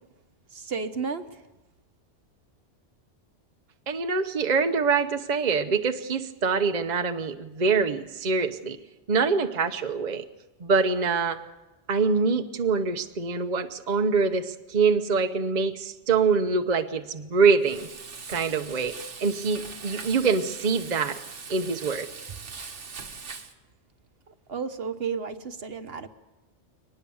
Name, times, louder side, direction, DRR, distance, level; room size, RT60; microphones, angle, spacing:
voice 1, 0.5-1.4 24.3-26.1, right 5 dB, 60° right, 10 dB, 1.3 m, -33 dB
voice 2, 3.9-8.8 9.1-10.2 10.6-11.4 11.9-17.9 18.3-21.2 21.5-22.1, right 5 dB, 40° right, 7 dB, 1.0 m, -25 dB
Frying (food), 17.6-23.5, right 5 dB, 90° right, 1.8 m, -41 dB
23.0 x 19.5 x 7.1 m, 1.1 s
omnidirectional pair, 1.2 m